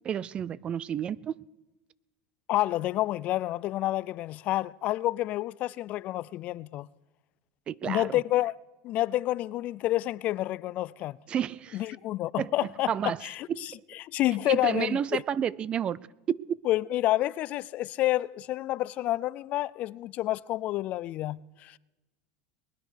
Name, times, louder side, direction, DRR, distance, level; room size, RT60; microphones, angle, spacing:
voice 1, 0.0-1.4 7.7-8.2 11.3-11.8 12.4-12.5 12.9-13.2 13.5-13.7 14.5-16.0 16.3-16.6, right 9 dB, 35° right, 0.4 m, -30 dB
voice 2, 2.5-6.9 7.8-8.5 8.8-11.2 11.7-13.7 14.0-15.2 16.7-21.8, left 15 dB, 50° left, 0.4 m, -29 dB
20.0 x 10.5 x 6.4 m
supercardioid pair, 120°, 3 cm